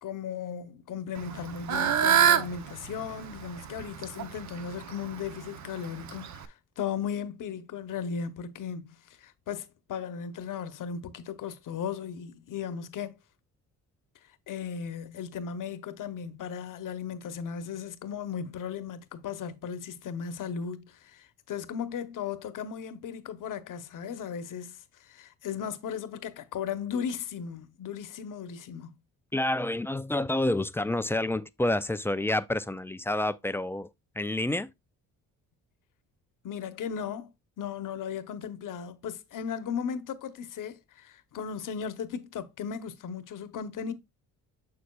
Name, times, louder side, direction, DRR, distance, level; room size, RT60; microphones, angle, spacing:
voice 1, 0.0-13.2 14.5-29.0 36.4-37.3 37.6-43.9, left 7 dB, 60° left, 1.0 m, -36 dB
Fowl / Bird, 1.2-6.5, right 9 dB, 50° right, 0.8 m, -28 dB
voice 2, 29.3-33.9 34.2-34.7, left 1 dB, 5° left, 0.3 m, -28 dB
6.7 x 6.3 x 2.3 m
cardioid pair, 80°, 35 cm